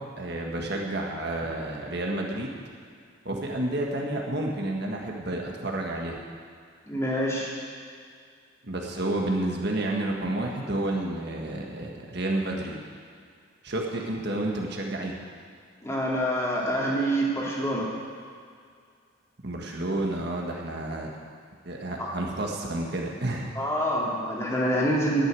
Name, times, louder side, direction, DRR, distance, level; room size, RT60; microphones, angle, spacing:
voice 1, 0.0-2.6 3.2-6.2 8.6-12.8 13.6-15.2 19.4-21.1 21.6-23.5, right 1 dB, 50° right, 0 dB, 1.6 m, -30 dB
voice 2, 6.9-7.5 15.8-17.9 22.0-22.1 23.6-25.3, equal, 15° left, -4 dB, 2.4 m, -26 dB
10.5 x 9.4 x 9.6 m, 2.2 s
head